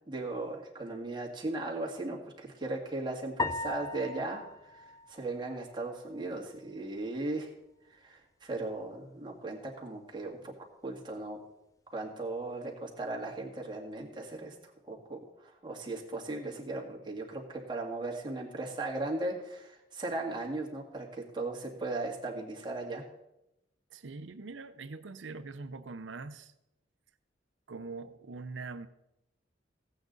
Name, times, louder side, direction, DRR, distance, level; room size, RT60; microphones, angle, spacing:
voice 1, 0.1-7.5 8.0-10.5 10.8-11.4 11.9-14.6 14.9-23.0, right 2 dB, 25° right, -1 dB, 2.0 m, -37 dB
sound 1, 3.4-5.9, left 3 dB, 20° left, 0.4 m, -38 dB
voice 2, 23.9-26.5 27.7-28.9, right 3 dB, 75° right, 11 dB, 0.6 m, -43 dB
15.0 x 8.6 x 4.0 m, 0.87 s
head